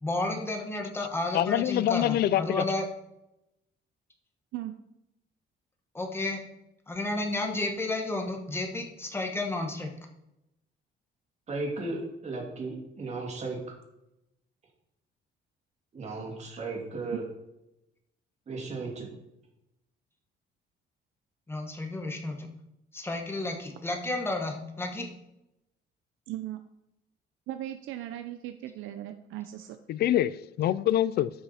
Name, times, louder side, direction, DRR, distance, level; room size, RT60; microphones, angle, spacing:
voice 1, 0.0-2.9 5.9-6.4 6.9-9.9 21.5-22.5 22.9-25.1, left 2 dB, 10° left, 1.3 m, -32 dB
voice 2, 1.3-2.6 29.9-31.3, left 12 dB, 55° left, 0.4 m, -25 dB
voice 3, 11.5-13.8 15.9-17.2 18.5-19.1, right 3 dB, 35° right, 2.5 m, -35 dB
voice 4, 26.3-26.6 27.5-29.8, right 13 dB, 80° right, 0.6 m, -38 dB
12.5 x 5.8 x 4.2 m
cardioid pair, 155°, 20 cm